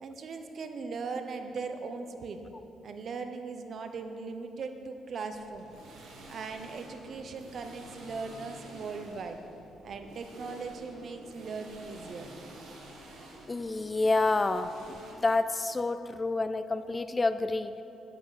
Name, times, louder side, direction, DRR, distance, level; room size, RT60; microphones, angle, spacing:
voice 1, 0.0-2.4 2.8-5.7 6.3-9.4 9.8-12.3, right 4 dB, 55° right, 7 dB, 0.8 m, -39 dB
sound 1, 5.3-15.1, right 2 dB, 75° right, 1.7 m, -49 dB
voice 2, 13.5-14.7 15.2-17.8, left 3 dB, 25° left, 12 dB, 0.3 m, -28 dB
9.9 x 8.7 x 4.1 m, 2.9 s
cardioid pair, 90°, 0 cm